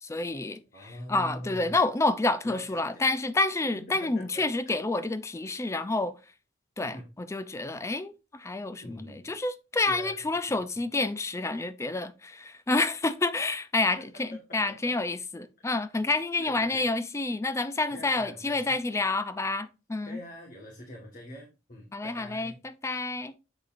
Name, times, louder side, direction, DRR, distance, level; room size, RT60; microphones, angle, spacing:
voice 1, 0.0-6.2 6.8-20.2 21.9-23.4, left 2 dB, 15° left, 0.4 m, -29 dB
voice 2, 0.7-1.7 2.4-3.0 3.7-4.4 6.8-7.0 8.8-9.3 9.9-10.2 10.5-10.6 14.0-14.1 14.3-14.6 15.6-15.8 16.4-16.8 17.9-18.8 20.0-22.6, equal, 45° left, 1.6 m, -44 dB
7.9 x 6.6 x 2.6 m
head